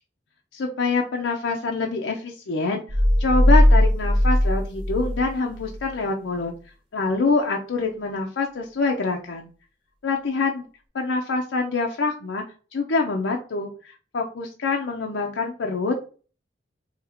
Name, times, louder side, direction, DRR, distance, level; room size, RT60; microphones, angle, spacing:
voice 1, 0.5-2.8 3.2-6.5 6.9-9.5 10.0-10.6 10.9-12.4 12.7-16.0, left 3 dB, 90° left, 1 dB, 0.5 m, -25 dB
sound 1, 2.9-5.9, left 1 dB, 30° right, 0.8 m, -19 dB
2.8 x 2.7 x 4.1 m, 0.37 s
head